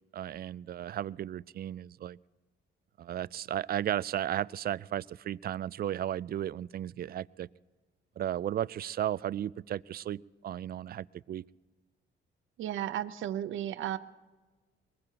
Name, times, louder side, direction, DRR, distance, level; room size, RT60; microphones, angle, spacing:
voice 1, 0.1-2.2 3.0-7.5 8.2-11.4, right 11 dB, 50° right, 20 dB, 0.4 m, -34 dB
voice 2, 12.6-14.0, right 11 dB, 80° right, 13 dB, 0.8 m, -34 dB
24.0 x 20.5 x 2.9 m, 1.3 s
cardioid pair, 90°, 20 cm